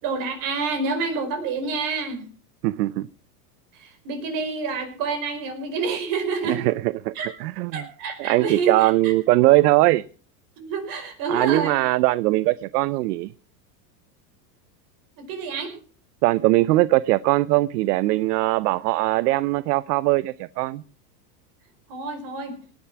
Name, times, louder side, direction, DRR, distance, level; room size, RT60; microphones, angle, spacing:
voice 1, 0.0-2.2 3.7-6.7 7.1-7.3 7.7-9.1 10.6-11.8 15.2-15.7 21.9-22.6, right 4 dB, 45° right, 5.0 m, -28 dB
voice 2, 2.6-3.1 6.4-7.1 7.4-7.8 8.2-10.0 11.3-13.3 16.2-20.8, right 18 dB, 70° right, 0.7 m, -21 dB
18.5 x 10.5 x 5.9 m
supercardioid pair, 160°, 49 cm